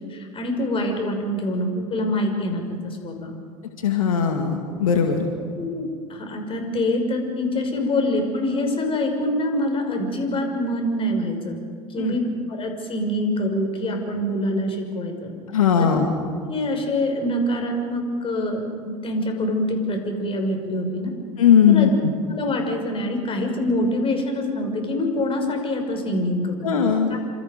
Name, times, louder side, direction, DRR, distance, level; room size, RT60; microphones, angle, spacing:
voice 1, 0.1-3.3 5.6-11.6 11.9-15.3 15.8-15.9 16.5-21.1 21.7-21.9 22.3-26.7 27.1-27.2, left 1 dB, 30° left, 3 dB, 6.0 m, -25 dB
voice 2, 3.8-5.3 12.0-12.2 15.5-16.1 21.4-21.9 26.6-27.1, left 8 dB, 80° left, 3 dB, 2.2 m, -18 dB
27.5 x 27.0 x 5.3 m, 2.1 s
hypercardioid pair, 75°, 17 cm